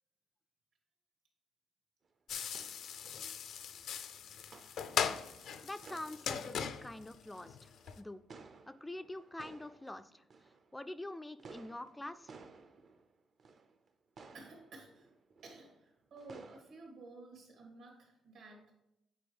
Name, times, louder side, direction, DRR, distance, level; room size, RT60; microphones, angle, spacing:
sound 1, 2.0-2.1 2.4-11.0 11.4-13.9 14.2-16.6, right 4 dB, 55° right, 0.6 m, -57 dB
sound 2, 2.3-8.0, left 8 dB, 70° left, 0.5 m, -39 dB
voice 1, 4.8-5.2 14.3-15.1 15.4-18.7, right 3 dB, 80° right, -1 dB, 2.7 m, -54 dB
voice 2, 5.6-8.2 8.7-12.3, left 1 dB, 10° left, 10 dB, 0.3 m, -46 dB
8.4 x 4.5 x 3.5 m, 0.85 s
cardioid pair, 90°, 0 cm